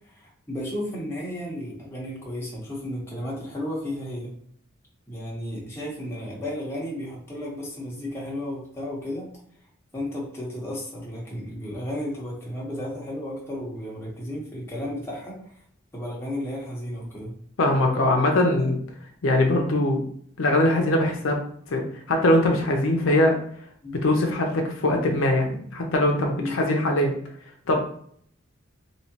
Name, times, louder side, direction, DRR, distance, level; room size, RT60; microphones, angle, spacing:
voice 1, 0.1-4.3 5.1-9.3 9.9-15.5 15.9-17.3 18.6-18.7 23.8-24.0 26.3-26.7, left 1 dB, 15° left, -5 dB, 1.0 m, -33 dB
voice 2, 17.6-18.8 19.2-20.0 20.4-21.4 21.7-23.3 24.0-27.1 27.7-27.8, left 1 dB, 75° left, 2 dB, 0.6 m, -21 dB
3.1 x 2.8 x 2.8 m, 0.62 s
head